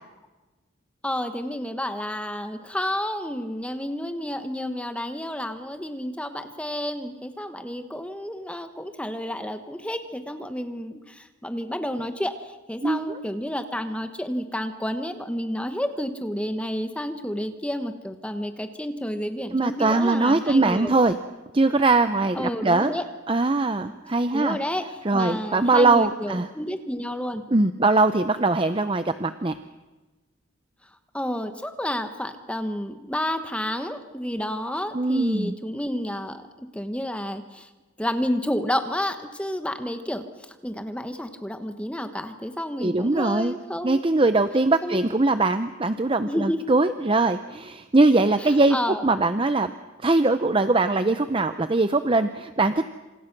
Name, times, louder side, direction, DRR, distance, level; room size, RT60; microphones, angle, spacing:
voice 1, 1.0-20.9 22.3-23.0 24.3-24.8 25.1-27.4 31.1-37.7 38.0-40.2 40.6-44.0 44.8-45.0 46.2-46.6 48.4-49.0, equal, 5° left, 8 dB, 1.2 m, -30 dB
voice 2, 12.8-13.2 19.5-21.2 21.5-22.9 23.3-24.6 25.0-26.5 27.5-29.6 34.9-35.6 42.8-43.5 43.8-48.8 49.0-49.7 50.0-52.9, right 2 dB, 25° right, 10 dB, 0.7 m, -21 dB
28.0 x 27.0 x 6.1 m, 1.2 s
head